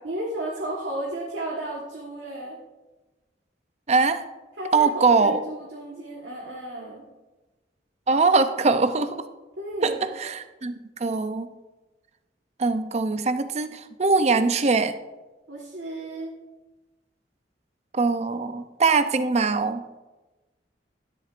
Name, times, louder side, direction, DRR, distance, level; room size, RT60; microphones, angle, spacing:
voice 1, 0.0-2.6 4.6-7.0 9.6-10.2 15.5-16.3, right 1 dB, 75° right, -3 dB, 1.4 m, -33 dB
voice 2, 3.9-4.2 4.7-5.4 8.1-9.3 9.8-10.7 11.0-11.5 12.6-14.9 17.9-19.8, right 4 dB, 40° right, 10 dB, 0.5 m, -22 dB
12.5 x 10.0 x 2.5 m, 1.1 s
head